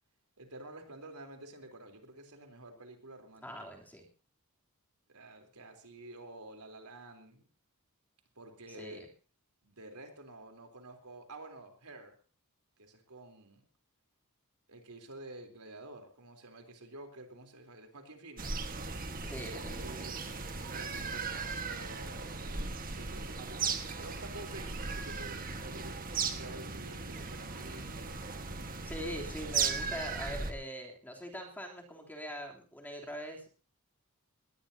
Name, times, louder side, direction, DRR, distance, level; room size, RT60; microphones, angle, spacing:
voice 1, 0.4-3.5 5.1-7.5 8.4-9.0 9.6-12.1 12.8-13.7 14.7-18.6 19.7-20.2 20.7-26.0 26.4-28.3 28.8-29.1, right 2 dB, 90° right, 4 dB, 3.7 m, -50 dB
voice 2, 3.4-4.1 8.7-9.1 19.2-20.1 28.8-33.5, equal, 10° left, 0 dB, 3.3 m, -42 dB
sound 1, 18.4-30.5, right 4 dB, 40° right, 1.6 m, -37 dB
20.5 x 18.5 x 2.8 m, 0.38 s
head